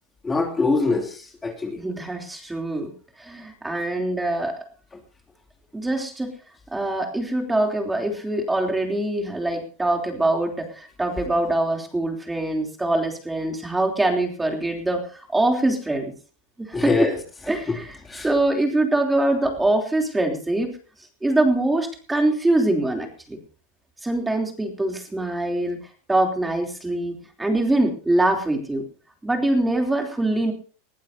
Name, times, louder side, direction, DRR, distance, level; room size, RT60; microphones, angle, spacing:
voice 1, 0.2-1.8 16.7-17.2 17.7-17.8 18.0-18.3, left 3 dB, 15° left, 2 dB, 2.9 m, -23 dB
voice 2, 1.8-2.9 3.2-4.6 5.7-6.3 6.7-16.1 16.6-16.9 17.5-18.0 18.2-20.7 21.2-23.4 24.0-25.8 26.1-28.9 29.2-30.5, right 2 dB, 10° right, 3 dB, 3.3 m, -23 dB
21.0 x 15.0 x 2.8 m, 0.40 s
hypercardioid pair, 110°, 0 cm